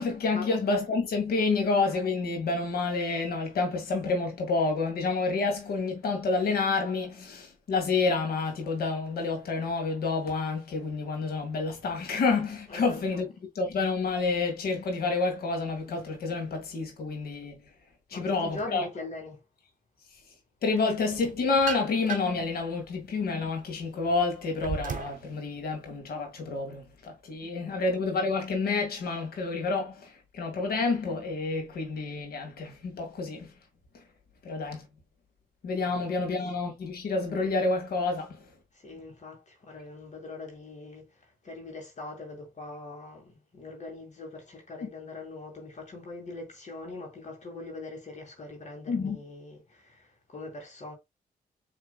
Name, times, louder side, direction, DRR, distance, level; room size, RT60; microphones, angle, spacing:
voice 1, 0.0-13.3 13.6-17.6 18.1-18.9 20.6-33.5 34.4-34.9 35.6-38.4 44.8-44.9 48.9-49.2, left 3 dB, 80° left, 1.8 m, -29 dB
voice 2, 12.7-13.2 18.1-19.4 27.4-27.8 35.8-36.0 38.8-50.9, left 2 dB, 50° left, 2.0 m, -42 dB
sound 1, 21.1-22.5 23.0-25.3, right 7 dB, 60° right, 0.8 m, -37 dB
6.7 x 3.3 x 2.2 m
cardioid pair, 80°, 16 cm